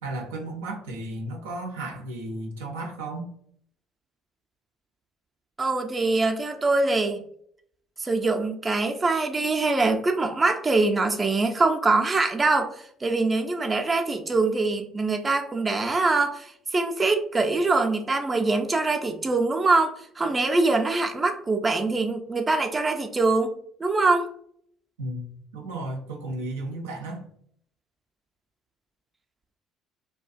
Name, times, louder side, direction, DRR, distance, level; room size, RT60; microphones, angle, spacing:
voice 1, 0.0-3.3 25.0-27.2, right 2 dB, 85° right, 2 dB, 0.5 m, -34 dB
voice 2, 5.6-7.2 8.0-23.5 23.8-24.3, right 3 dB, 25° right, 4 dB, 0.4 m, -23 dB
2.4 x 2.1 x 2.4 m, 0.65 s
hypercardioid pair, 60°, 0 cm